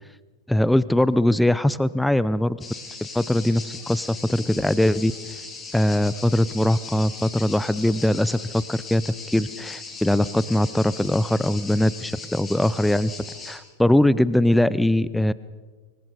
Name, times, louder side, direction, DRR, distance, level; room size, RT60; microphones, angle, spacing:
voice 1, 0.5-2.6 3.1-5.1 5.7-13.1 13.5-15.3, left 1 dB, 5° left, 18 dB, 0.6 m, -21 dB
sound 1, 2.6-13.6, left 4 dB, 20° left, 3.6 m, -38 dB
26.0 x 22.5 x 5.4 m, 1.4 s
figure-of-eight pair, 90°, 0 cm